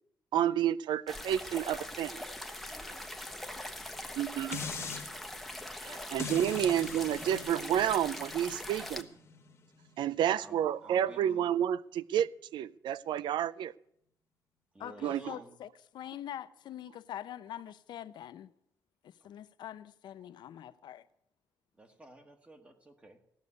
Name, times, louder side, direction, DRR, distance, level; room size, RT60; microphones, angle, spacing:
voice 1, 0.3-2.2 4.2-4.6 5.9-9.0 10.0-13.7 15.0-15.3, right 10 dB, 85° right, 0.4 m, -30 dB
sound 1, 1.1-9.0, left 1 dB, ahead, 0.9 m, -42 dB
sound 2, 4.5-5.1 6.2-11.3 11.8-11.9, left 5 dB, 35° left, 1.3 m, -44 dB
voice 2, 5.8-6.1 10.2-11.5 14.7-15.6 19.2-19.3 21.8-23.2, right 1 dB, 15° right, 1.4 m, -53 dB
voice 3, 14.8-18.5 19.0-21.0, left 11 dB, 75° left, 0.7 m, -44 dB
16.0 x 6.7 x 9.5 m
cardioid pair, 155°, 8 cm